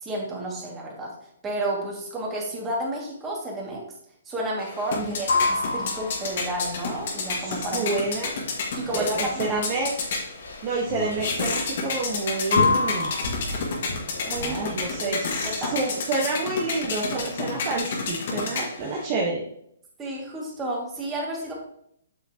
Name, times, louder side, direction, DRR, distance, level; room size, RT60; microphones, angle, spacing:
voice 1, 0.0-1.1 1.4-3.9 4.3-7.9 8.8-9.7 14.2-15.2 15.4-15.7 20.0-21.5, right 1 dB, 15° right, -3 dB, 2.1 m, -31 dB
sound 1, 4.6-19.1, left 4 dB, 55° left, 1.8 m, -31 dB
sound 2, 5.1-15.1, left 3 dB, 85° left, 2.4 m, -28 dB
voice 2, 7.4-8.3 8.9-9.9 10.6-13.1 14.4-19.4, right 3 dB, 35° right, -3 dB, 1.3 m, -29 dB
8.0 x 6.0 x 2.9 m, 0.71 s
hypercardioid pair, 150°, 0 cm